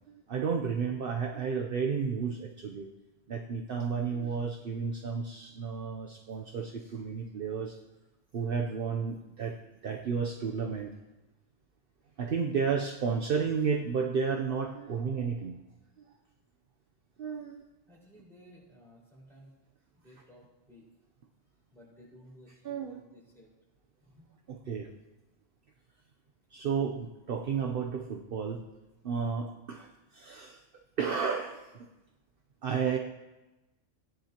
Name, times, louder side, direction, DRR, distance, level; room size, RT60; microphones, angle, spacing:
voice 1, 0.1-2.9 3.3-7.8 8.3-9.6 9.8-10.9 12.2-15.6 16.0-16.2 17.2-17.7 22.6-23.0 24.5-24.9 26.5-28.6 29.0-30.6 31.0-31.9 32.6-33.0, right 6 dB, 55° right, 2 dB, 0.8 m, -32 dB
voice 2, 17.9-19.5 19.9-20.9 21.7-23.5 24.0-24.3, equal, ahead, -7 dB, 4.9 m, -56 dB
17.0 x 10.5 x 2.9 m, 1.1 s
omnidirectional pair, 1.2 m